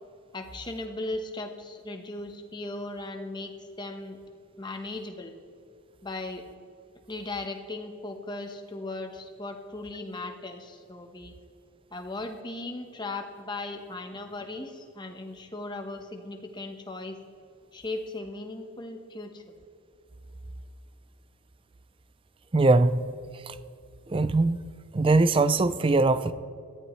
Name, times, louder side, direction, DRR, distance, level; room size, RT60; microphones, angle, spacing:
voice 1, 0.3-4.2 4.6-5.3 6.0-6.4 7.1-11.4 11.9-17.2 17.7-19.4, left 2 dB, 20° left, 5 dB, 1.0 m, -37 dB
voice 2, 22.5-23.0 23.5-23.6 24.1-24.6 24.9-26.3, right 3 dB, 25° right, 14 dB, 0.4 m, -21 dB
18.0 x 13.5 x 3.2 m, 2.4 s
head